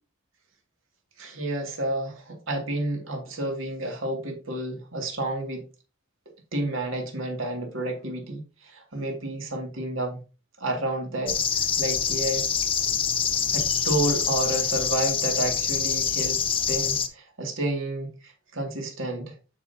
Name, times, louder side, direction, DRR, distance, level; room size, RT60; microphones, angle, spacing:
voice 1, 1.2-5.7 6.5-10.2 10.6-12.5 13.5-19.3, right 1 dB, 80° right, 2 dB, 2.4 m, -30 dB
sound 1, 11.3-17.1, left 7 dB, 25° left, 0.7 m, -25 dB
9.0 x 6.5 x 2.8 m, 0.32 s
head